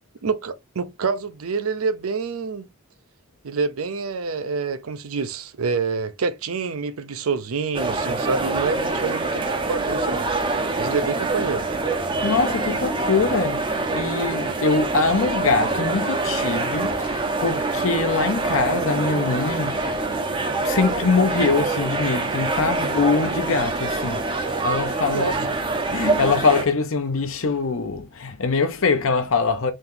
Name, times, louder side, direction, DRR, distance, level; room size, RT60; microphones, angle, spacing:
voice 1, 0.2-2.7 3.4-10.3 10.8-11.7 25.1-25.4, right 4 dB, 75° right, 0.6 m, -27 dB
sound 1, 7.7-26.6, right 3 dB, 25° right, 0.6 m, -25 dB
voice 2, 12.2-20.0 20.6-25.5 25.9-29.7, left 4 dB, 65° left, 0.7 m, -23 dB
3.7 x 2.8 x 3.7 m
head